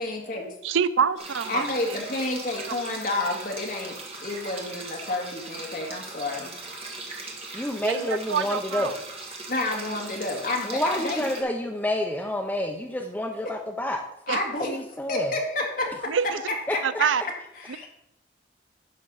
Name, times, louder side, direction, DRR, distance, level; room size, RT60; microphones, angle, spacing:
voice 1, 0.0-0.5 1.5-4.0 4.2-6.5 9.5-11.4 14.3-14.7 15.1-16.1 16.7-17.1 17.6-17.9, left 2 dB, 45° left, 1 dB, 1.8 m, -30 dB
voice 2, 0.6-2.0 7.8-9.0 14.3-14.4 16.1-16.4 16.8-17.2, right 7 dB, 85° right, 15 dB, 0.5 m, -26 dB
sound 1, 1.2-11.4, right 3 dB, 30° right, 1.5 m, -39 dB
voice 3, 7.5-8.9 10.6-14.0 14.6-15.3 16.7-16.8, left 1 dB, 10° left, 2 dB, 0.6 m, -28 dB
10.5 x 6.5 x 4.0 m, 0.78 s
head